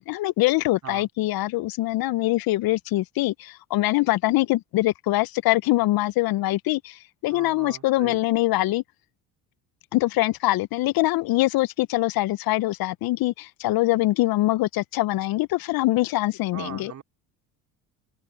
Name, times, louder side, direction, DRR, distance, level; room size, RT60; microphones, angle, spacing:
voice 1, 0.0-8.8 9.9-16.9, left 18 dB, 55° left, 0.8 m, -23 dB
voice 2, 7.3-8.2 16.5-17.0, right 9 dB, 40° right, 3.7 m, -39 dB
hypercardioid pair, 75°, 42 cm